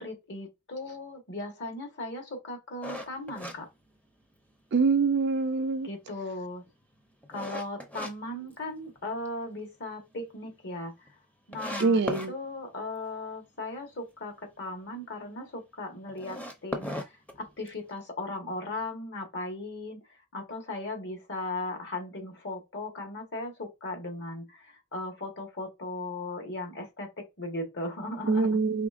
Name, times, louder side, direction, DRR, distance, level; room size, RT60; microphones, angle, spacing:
voice 1, 0.0-3.7 5.8-6.6 7.3-10.9 11.5-20.0 20.3-28.6, left 2 dB, 55° left, 1.3 m, -37 dB
sound 1, 2.8-4.5 5.0-5.1 5.6-8.1 8.5-9.3 9.6-9.7 10.1-10.2 10.3-10.4 11.1-11.2 11.5-12.3 16.1-17.9, equal, 5° left, 0.6 m, -38 dB
voice 2, 4.7-5.9 11.8-12.3 28.3-28.9, right 4 dB, 50° right, 0.4 m, -24 dB
5.0 x 3.2 x 2.4 m
head